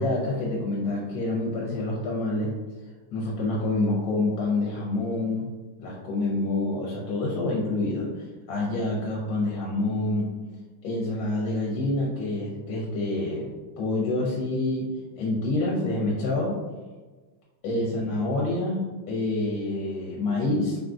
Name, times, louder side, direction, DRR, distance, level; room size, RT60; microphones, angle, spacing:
voice 1, 0.0-2.5 3.1-5.5 5.8-10.3 10.8-13.5 13.8-14.9 15.2-16.6 17.6-20.8, left 2 dB, 85° left, -4 dB, 1.3 m, -27 dB
3.5 x 2.5 x 2.3 m, 1.3 s
omnidirectional pair, 2.1 m